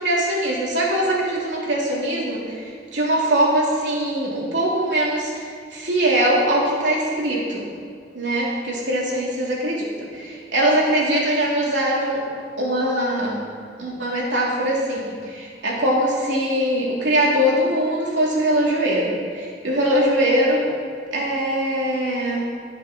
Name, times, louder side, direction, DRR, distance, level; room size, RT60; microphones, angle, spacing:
voice 1, 0.0-7.7 8.1-12.2 12.6-13.5 13.8-20.6 21.1-22.4, right 1 dB, 85° right, -4 dB, 3.1 m, -22 dB
11.0 x 8.8 x 6.2 m, 2.2 s
head